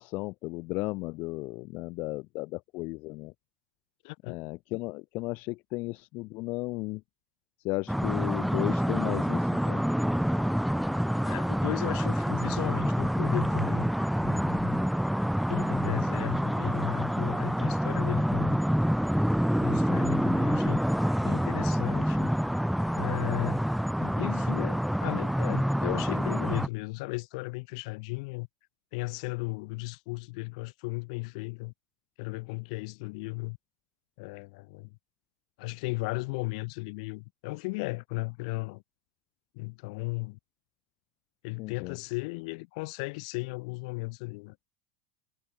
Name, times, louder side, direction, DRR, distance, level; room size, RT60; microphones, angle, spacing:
voice 1, 0.0-3.3 4.2-7.0 7.6-9.8 41.6-42.0, left 23 dB, 40° left, 1.2 m, -35 dB
voice 2, 4.0-4.3 11.2-13.9 14.2-14.8 15.5-18.6 19.5-20.8 21.2-22.3 22.9-23.6 24.0-28.5 28.9-31.7 32.2-33.6 34.2-34.9 35.6-38.8 39.5-40.4 41.4-44.6, left 27 dB, 60° left, 3.0 m, -35 dB
sound 1, 7.9-26.7, equal, ahead, 0.9 m, -27 dB
supercardioid pair, 175°, 4 cm